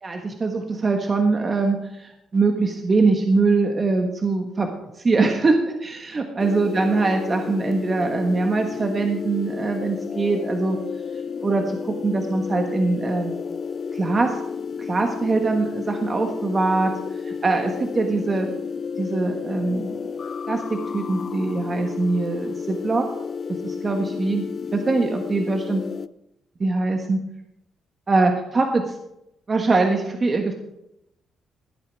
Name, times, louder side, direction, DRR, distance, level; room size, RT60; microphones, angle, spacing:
voice 1, 0.0-4.7 4.9-5.6 5.8-10.8 11.4-13.3 13.9-14.4 14.8-16.9 17.2-18.5 19.0-20.0 20.5-23.0 23.6-24.4 24.7-25.8 26.6-27.2 28.1-28.8 29.5-30.5, right 3 dB, 35° right, 4 dB, 1.4 m, -22 dB
sound 1, 6.4-26.1, left 6 dB, 40° left, 0.4 m, -31 dB
16.0 x 8.7 x 4.7 m, 0.84 s
cardioid pair, 90°, 0 cm